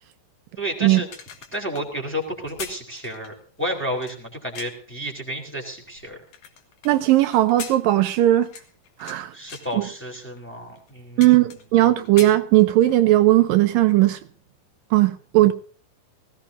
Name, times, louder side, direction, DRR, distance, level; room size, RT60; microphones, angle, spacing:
voice 1, 0.6-1.1 1.5-6.2 9.3-11.3, equal, 5° left, 1 dB, 3.3 m, -31 dB
sound 1, 0.9-4.9 5.5-6.9 7.3-9.2 9.5-9.8 10.4-10.5 10.8-11.8 12.0-13.0 13.4-13.6, left 7 dB, 65° left, 3.2 m, -40 dB
voice 2, 6.9-8.5 9.0-9.3 9.7-9.9 11.2-14.2 14.9-15.5, right 15 dB, 80° right, 9 dB, 2.4 m, -17 dB
19.5 x 16.5 x 2.7 m, 0.44 s
omnidirectional pair, 4.0 m